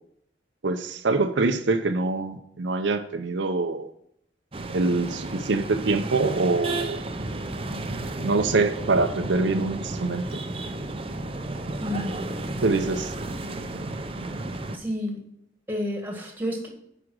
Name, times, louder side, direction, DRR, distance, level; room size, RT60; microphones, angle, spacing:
voice 1, 0.6-3.9 4.7-7.0 8.2-10.4 12.6-13.1, right 3 dB, 75° right, 7 dB, 0.7 m, -24 dB
sound 1, 4.5-14.8, right 2 dB, 30° right, 0.6 m, -33 dB
voice 2, 11.7-12.2 14.7-15.2 15.7-16.7, left 1 dB, 10° right, 2 dB, 1.6 m, -30 dB
9.7 x 5.0 x 6.2 m, 0.72 s
head